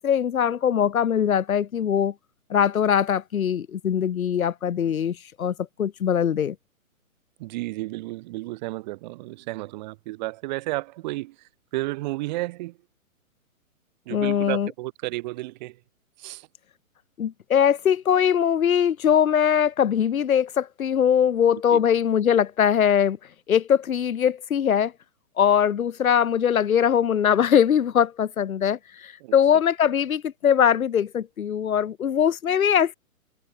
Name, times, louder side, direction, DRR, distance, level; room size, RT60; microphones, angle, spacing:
voice 1, 0.0-2.1 2.5-6.6 14.1-14.7 17.2-23.2 23.5-24.9 25.4-33.0, left 8 dB, 70° left, 1.7 m, -21 dB
voice 2, 7.4-11.3 11.7-12.7 14.1-15.7 16.2-16.4 21.7-21.8 29.2-29.3, right 20 dB, 30° right, 1.9 m, -32 dB
hypercardioid pair, 150°, 43 cm